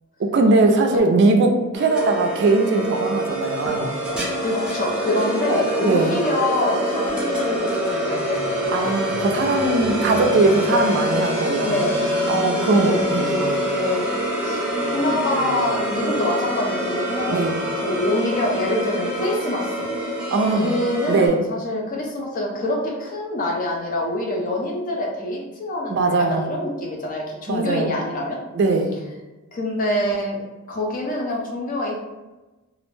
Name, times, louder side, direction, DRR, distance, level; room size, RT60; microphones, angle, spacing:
voice 1, 0.2-3.9 5.8-6.2 8.7-11.9 12.3-13.6 17.3-17.5 20.3-20.7 21.1-21.4 25.9-26.5 27.5-27.9 28.5-28.9, right 3 dB, 55° right, 4 dB, 0.4 m, -20 dB
sound 1, 1.7-21.3, equal, 5° right, 0.6 m, -25 dB
voice 2, 4.4-8.6 11.6-11.9 12.8-13.4 13.8-14.1 14.4-19.7 20.5-28.4 29.5-30.4 30.7-32.0, left 1 dB, 40° left, -1 dB, 0.5 m, -25 dB
2.4 x 2.1 x 3.1 m, 1.1 s
head